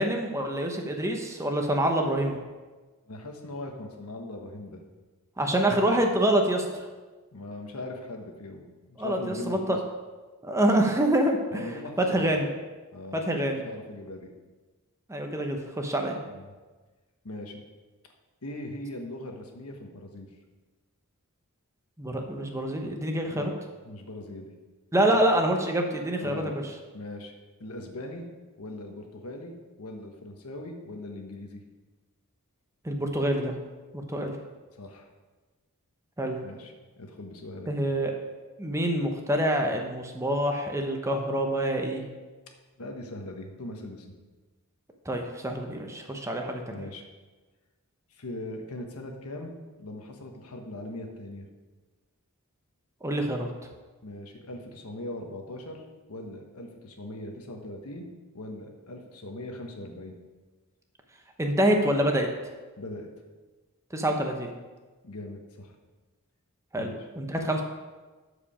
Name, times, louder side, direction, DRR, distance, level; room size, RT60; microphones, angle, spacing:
voice 1, 0.0-2.4 5.4-6.9 9.0-9.8 10.4-11.6 12.0-12.5 13.1-13.6 15.1-16.2 22.0-23.5 24.9-26.6 32.8-33.6 33.9-34.3 36.2-36.4 37.7-38.2 38.6-42.0 45.0-46.8 53.0-53.5 61.4-62.3 63.9-64.5 66.7-67.6, right 1 dB, 15° right, 3 dB, 0.9 m, -26 dB
voice 2, 3.1-4.8 7.3-9.8 11.5-12.4 12.9-13.2 13.6-14.3 16.3-16.5 17.2-17.6 18.4-20.3 23.3-23.5 23.8-24.5 26.2-26.5 26.9-27.3 27.6-28.3 28.6-31.6 34.2-34.3 34.8-35.1 36.4-37.7 42.8-44.1 46.7-47.1 48.1-49.5 49.8-51.5 54.0-55.8 56.1-58.1 58.3-60.2 62.8-63.1 65.0-65.7 66.8-67.0, left 1 dB, 80° left, 3 dB, 1.3 m, -40 dB
13.0 x 5.0 x 5.0 m, 1.3 s
head